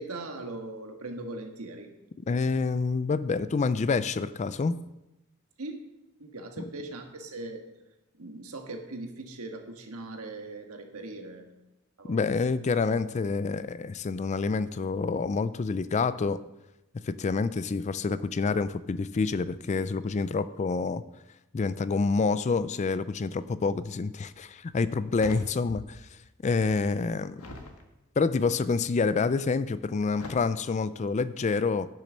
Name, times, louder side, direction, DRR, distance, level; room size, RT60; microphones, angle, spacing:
voice 1, 0.0-1.9 5.6-5.8 6.2-7.7 8.2-11.5 12.0-12.2, right 2 dB, 80° right, 4 dB, 1.5 m, -40 dB
voice 2, 2.3-4.8 12.1-16.4 17.0-21.0 21.5-26.0 26.4-27.4 28.2-31.9, left 4 dB, 30° left, 15 dB, 0.3 m, -27 dB
sound 1, 25.1-26.1 26.4-27.8 28.4-28.9 30.1-30.3, left 2 dB, 85° left, 1.5 m, -44 dB
10.0 x 6.4 x 6.3 m, 0.94 s
head